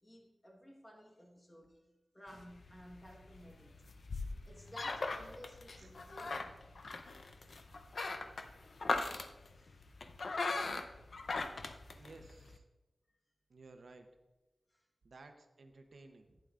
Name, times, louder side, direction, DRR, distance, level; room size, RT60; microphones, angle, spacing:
voice 1, 0.0-1.9 2.1-3.8 4.5-6.6 9.6-9.8 13.1-13.2 14.7-14.8, equal, 25° left, 0 dB, 1.4 m, -55 dB
sound 1, 2.3-12.6, left 3 dB, 80° left, 0.6 m, -40 dB
voice 2, 12.0-12.6 13.5-14.1 15.0-16.4, right 3 dB, 85° right, 6 dB, 0.8 m, -56 dB
11.5 x 9.2 x 2.5 m, 1.1 s
wide cardioid pair, 90°, 0 cm